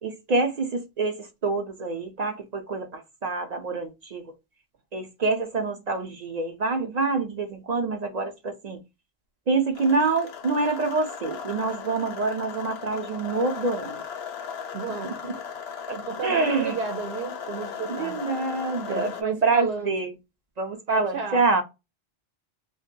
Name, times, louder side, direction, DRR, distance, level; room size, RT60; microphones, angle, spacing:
voice 1, 0.0-4.2 4.9-8.8 9.5-14.0 15.0-15.3 15.9-16.8 17.9-20.1 20.6-21.6, right 3 dB, 55° right, 0.5 m, -26 dB
sound 1, 9.7-19.2, left 7 dB, 90° left, 0.8 m, -37 dB
voice 2, 14.7-15.2 15.9-18.2 18.9-20.0 20.9-21.5, right 5 dB, 85° right, 0.9 m, -32 dB
2.5 x 2.2 x 3.7 m
omnidirectional pair, 1.0 m